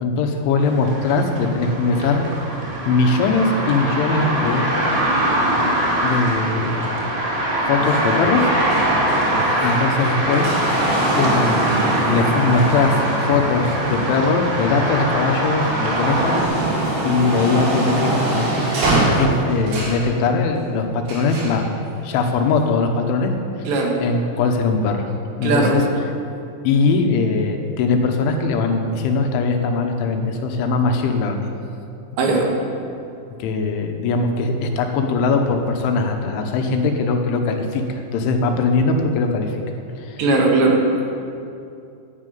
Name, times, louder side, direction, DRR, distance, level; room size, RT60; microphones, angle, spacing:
voice 1, 0.0-2.6 2.9-4.7 5.6-6.9 7.6-8.5 9.6-16.4 17.0-18.7 19.2-21.6 22.0-23.3 24.0-25.1 25.4-25.9 26.7-31.5 33.4-39.5 40.0-40.2, left 3 dB, 90° left, 4 dB, 3.6 m, -21 dB
sound 1, 0.6-16.4, right 1 dB, 20° right, 1.3 m, -22 dB
sound 2, 7.8-15.0 15.5-20.1 21.1-21.6 22.5-22.6, right 2 dB, 90° right, 6.7 m, -24 dB
voice 2, 25.4-25.7 32.2-32.5 40.2-40.8, right 3 dB, 70° right, 0 dB, 4.0 m, -17 dB
11.0 x 10.5 x 9.3 m, 2.6 s
omnidirectional pair, 5.3 m